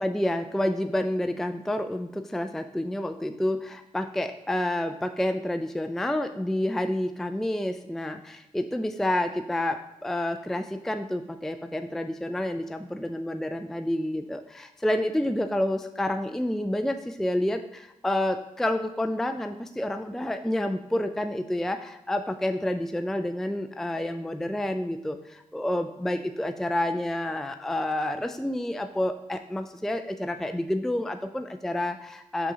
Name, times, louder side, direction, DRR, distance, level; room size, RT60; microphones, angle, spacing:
voice 1, 0.0-32.5, left 1 dB, 5° left, 8 dB, 0.4 m, -29 dB
6.1 x 4.7 x 3.9 m, 0.94 s
supercardioid pair, 50°, 14 cm